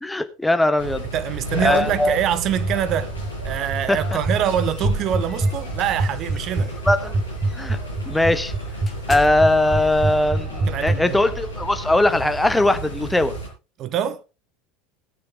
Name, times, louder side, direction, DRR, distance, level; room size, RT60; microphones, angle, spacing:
voice 1, 0.0-1.1 1.6-2.2 3.9-4.0 6.9-7.2 7.5-7.8 8.1-8.5 9.1-13.3, left 1 dB, 5° left, 1.3 m, -20 dB
sound 1, 0.8-13.5, right 1 dB, 85° left, 6.0 m, -32 dB
voice 2, 1.1-3.1 3.4-6.7 10.7-11.2 13.8-14.2, right 10 dB, 40° right, 0.8 m, -24 dB
sound 2, 2.6-11.0, right 2 dB, 20° right, 1.2 m, -23 dB
sound 3, 4.1-6.9 7.4-7.6 8.0-12.3, left 3 dB, 30° left, 3.2 m, -40 dB
19.0 x 8.4 x 3.5 m
figure-of-eight pair, 75°, 0 cm